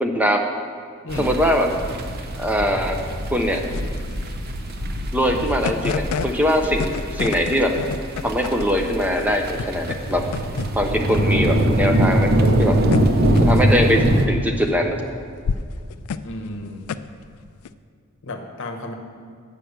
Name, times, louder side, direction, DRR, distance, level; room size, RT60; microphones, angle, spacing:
voice 1, 0.0-0.5 1.2-1.7 2.4-3.0 3.3-3.6 5.1-7.7 8.2-10.2 10.7-12.3 12.6-12.8 13.4-15.0, equal, 5° right, 3 dB, 0.5 m, -21 dB
voice 2, 1.0-1.4 16.2-16.9 18.2-18.9, left 1 dB, 60° left, 4 dB, 0.9 m, -32 dB
sound 1, 1.1-14.3, right 1 dB, 45° right, 0.7 m, -23 dB
sound 2, 3.5-17.7, left 6 dB, 85° left, 0.3 m, -32 dB
8.1 x 5.6 x 6.4 m, 2.2 s
head